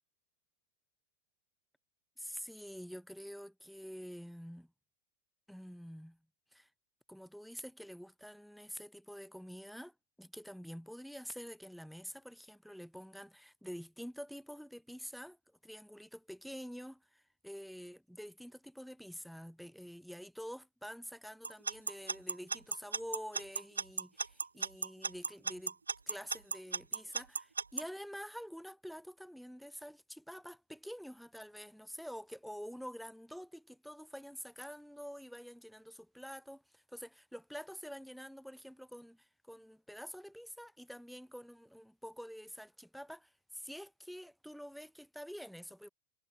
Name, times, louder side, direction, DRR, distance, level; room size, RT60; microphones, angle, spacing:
voice 1, 2.2-4.7 5.5-6.2 6.5-6.7 7.1-25.8 26.1-45.9, equal, ahead, 3.0 m, -48 dB
Alarm / Clock, 21.4-27.8, right 4 dB, 75° right, 1.5 m, -35 dB
figure-of-eight pair, 90°, 0 cm